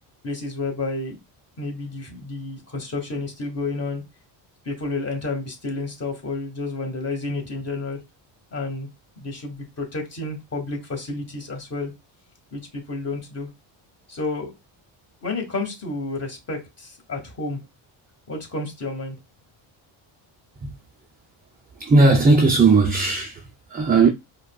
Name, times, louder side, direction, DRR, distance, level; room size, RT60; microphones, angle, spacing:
voice 1, 0.2-1.2 1.6-4.0 4.6-8.0 8.5-8.9 9.2-11.9 12.5-13.5 14.1-14.5 15.2-17.6 18.3-19.2, left 3 dB, 30° left, 1.4 m, -30 dB
voice 2, 21.8-24.1, right 3 dB, 20° right, 0.4 m, -17 dB
4.9 x 2.2 x 2.3 m
cardioid pair, 105°, 49 cm